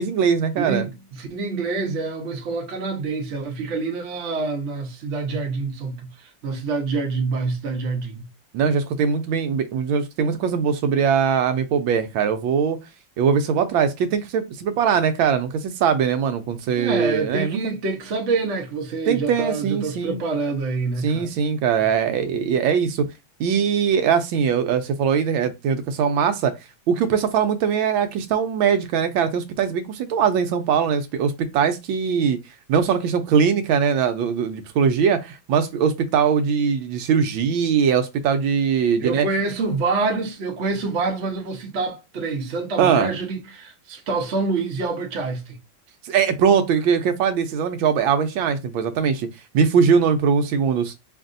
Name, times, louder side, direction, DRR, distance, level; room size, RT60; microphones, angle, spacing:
voice 1, 0.0-0.9 8.5-12.8 13.2-17.7 19.1-20.2 21.0-23.1 23.4-26.5 26.9-32.4 32.7-39.3 42.8-43.1 46.0-49.3 49.5-50.9, right 7 dB, 80° right, 1.3 m, -21 dB
voice 2, 0.6-8.3 16.8-21.4 39.0-45.6, right 3 dB, 50° right, 0.9 m, -26 dB
5.4 x 2.6 x 2.5 m
omnidirectional pair, 2.2 m